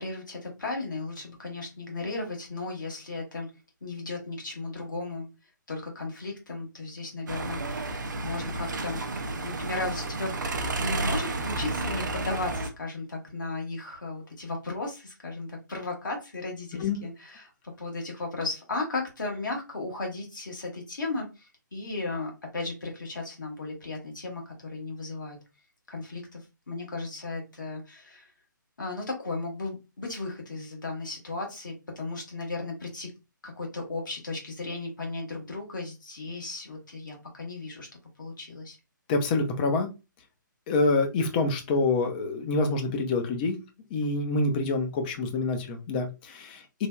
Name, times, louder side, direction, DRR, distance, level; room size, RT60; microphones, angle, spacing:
voice 1, 0.0-3.5 3.8-5.3 5.7-10.4 10.8-17.5 17.8-25.4 25.9-26.4 26.7-28.3 28.8-33.1 33.4-37.9 38.2-38.8, left 3 dB, 70° left, 1 dB, 1.3 m, -35 dB
sound 1, 7.3-12.7, right 2 dB, 65° right, 0.5 m, -31 dB
voice 2, 39.1-39.9 40.7-43.6 43.9-46.9, left 3 dB, 25° left, 5 dB, 0.5 m, -26 dB
3.2 x 2.1 x 2.3 m, 0.27 s
figure-of-eight pair, 135°, 11 cm